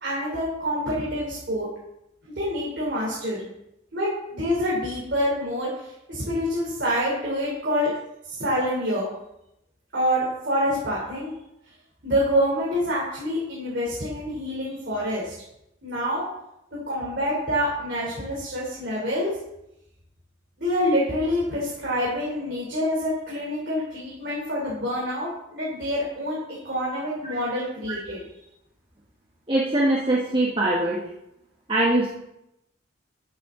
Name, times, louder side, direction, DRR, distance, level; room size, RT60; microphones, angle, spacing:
voice 1, 0.0-1.7 2.4-3.5 3.9-8.0 8.2-9.1 9.9-11.3 12.0-15.3 15.8-16.2 16.7-19.3 20.6-26.4 26.6-28.2, equal, 60° right, -6 dB, 3.3 m, -26 dB
voice 2, 29.5-31.0 31.7-32.1, right 1 dB, 25° right, -4 dB, 1.4 m, -22 dB
13.0 x 7.9 x 3.8 m, 0.84 s
head